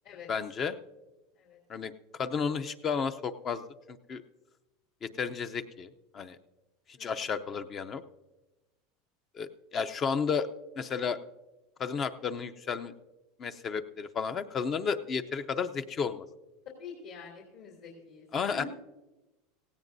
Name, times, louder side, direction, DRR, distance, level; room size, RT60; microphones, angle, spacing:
voice 1, 0.3-0.8 1.7-1.9 2.2-3.6 3.9-4.2 5.0-6.4 7.0-8.0 9.3-10.5 10.8-11.2 11.8-12.9 13.4-16.2 18.3-18.6, left 6 dB, 30° left, 10 dB, 0.6 m, -32 dB
voice 2, 16.8-18.7, left 6 dB, 60° left, -1 dB, 3.0 m, -46 dB
17.0 x 16.5 x 2.7 m, 1.1 s
supercardioid pair, 125°, 0 cm